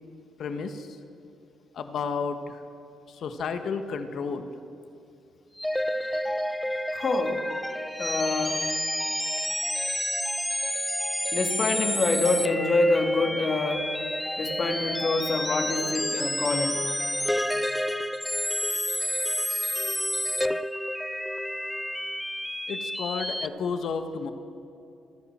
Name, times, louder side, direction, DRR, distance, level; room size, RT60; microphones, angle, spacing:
voice 1, 0.4-1.0 1.7-2.6 3.1-4.5 22.7-24.3, left 5 dB, 65° left, 8 dB, 1.7 m, -32 dB
sound 1, 5.6-23.5, left 1 dB, 5° left, 0.7 m, -29 dB
voice 2, 6.9-7.4 8.0-8.7 11.3-13.9 14.4-16.9, left 2 dB, 45° left, 4 dB, 3.1 m, -26 dB
30.0 x 11.5 x 7.5 m, 2.6 s
cardioid pair, 90°, 0 cm